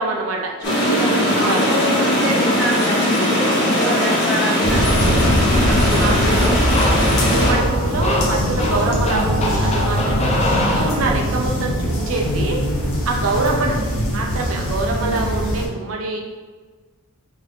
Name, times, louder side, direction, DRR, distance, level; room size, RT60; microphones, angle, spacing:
voice 1, 0.0-1.9 3.5-4.2 5.9-6.5 7.0-12.6 13.1-13.9 14.1-16.2, right 3 dB, 75° right, 0 dB, 0.6 m, -25 dB
sound 1, 0.6-7.5, equal, 50° left, 1.1 m, -19 dB
voice 2, 1.4-5.2 5.6-6.6 7.2-7.4 13.2-13.6, equal, 5° left, -6 dB, 0.9 m, -26 dB
sound 2, 4.6-15.7, equal, 80° left, 0.9 m, -21 dB
sound 3, 6.6-11.4, left 1 dB, 30° left, 0.5 m, -25 dB
4.8 x 2.6 x 3.5 m, 1.4 s
head